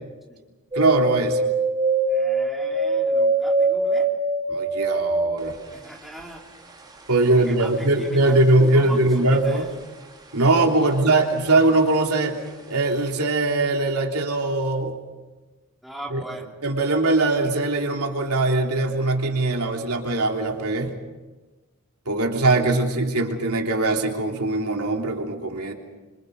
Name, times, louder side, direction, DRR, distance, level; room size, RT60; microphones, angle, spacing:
sound 1, 0.7-10.1 10.4-11.3 11.6-12.5 12.9-13.0, right 2 dB, 20° right, 3.4 m, -25 dB
voice 1, 0.7-1.4 4.5-5.5 7.1-9.6 10.3-12.4 12.7-15.0 16.1-16.2 16.6-20.9 22.0-25.7, right 2 dB, 80° right, 2 dB, 3.3 m, -21 dB
voice 2, 2.1-4.1 5.7-6.4 7.2-8.4 8.7-9.7 10.8-10.9 15.8-16.5, right 1 dB, ahead, -2 dB, 3.3 m, -39 dB
28.0 x 26.0 x 5.4 m, 1.2 s
head